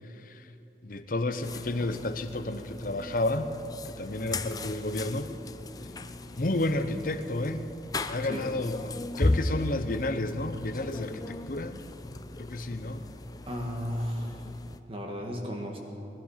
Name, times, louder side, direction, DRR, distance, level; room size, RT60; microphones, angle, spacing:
voice 1, 0.8-3.5 4.0-5.3 6.4-7.6 8.1-11.8 12.4-13.0, left 2 dB, 50° left, 9 dB, 0.8 m, -31 dB
sound 1, 1.4-14.8, left 2 dB, 20° left, 0.4 m, -36 dB
voice 2, 13.5-14.4 14.9-15.8, equal, 30° right, 1 dB, 1.9 m, -34 dB
20.5 x 12.0 x 5.7 m, 2.9 s
head